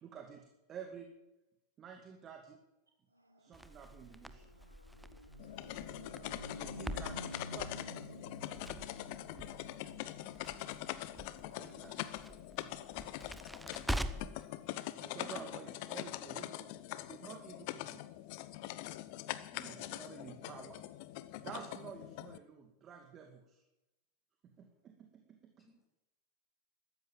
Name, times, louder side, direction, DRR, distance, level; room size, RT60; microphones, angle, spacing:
voice 1, 0.0-0.4 0.7-1.1 1.8-2.6 3.4-4.5 6.6-8.3 11.6-12.1 12.6-12.9 15.0-16.8 17.1-18.0 19.6-20.8 21.4-23.6 24.4-25.6, right 7 dB, 30° right, 3 dB, 2.3 m, -50 dB
voice 2, 3.1-3.8 5.9-6.9 9.7-10.2, right 2 dB, 75° right, 0 dB, 4.5 m, -71 dB
sound 1, 3.3-12.8, equal, 90° left, 0.5 m, -51 dB
Crackle, 3.5-14.4, equal, ahead, 1.0 m, -45 dB
sound 2, 5.4-22.4, left 15 dB, 45° left, 0.9 m, -43 dB
voice 3, 14.6-15.5 19.5-20.0 25.6-25.9, left 1 dB, 15° left, 1 dB, 7.0 m, -57 dB
14.5 x 13.5 x 7.3 m, 0.93 s
figure-of-eight pair, 90°, 0 cm